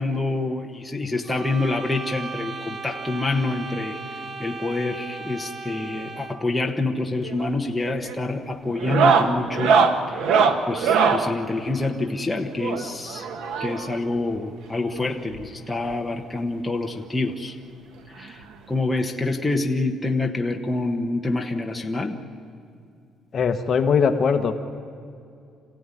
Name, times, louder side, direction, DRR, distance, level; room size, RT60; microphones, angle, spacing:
voice 1, 0.0-9.8 10.1-10.2 10.7-13.3 13.6-17.5 18.1-18.4 18.7-22.2, left 2 dB, 5° left, 1 dB, 1.1 m, -27 dB
sound 1, 1.2-6.5, right 4 dB, 20° right, 1.1 m, -36 dB
sound 2, 7.2-7.6 7.8-8.2 8.7-11.3 12.6-14.0 15.0-15.1 15.3-15.5 15.9-16.0 17.3-17.4 18.7-18.8, right 5 dB, 80° right, 1.5 m, -21 dB
voice 2, 23.3-24.5, left 6 dB, 35° left, 6 dB, 1.2 m, -20 dB
27.0 x 15.5 x 9.9 m, 2.4 s
cardioid pair, 180°, 0 cm